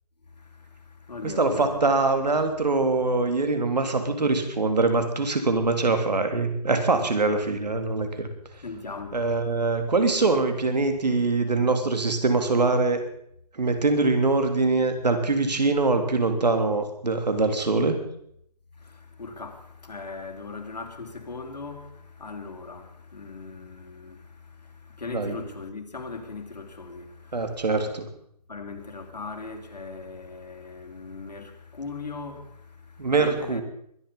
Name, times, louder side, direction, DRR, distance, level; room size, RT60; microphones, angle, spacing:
voice 1, 0.4-2.0 8.6-9.2 18.8-27.9 28.5-33.6, left 4 dB, 80° left, 3.2 m, -39 dB
voice 2, 1.2-8.3 9.1-13.0 13.5-18.0 25.1-25.4 27.3-28.1 33.0-33.6, right 3 dB, 80° right, 3.4 m, -23 dB
22.0 x 10.5 x 5.5 m
hypercardioid pair, 170°, 21 cm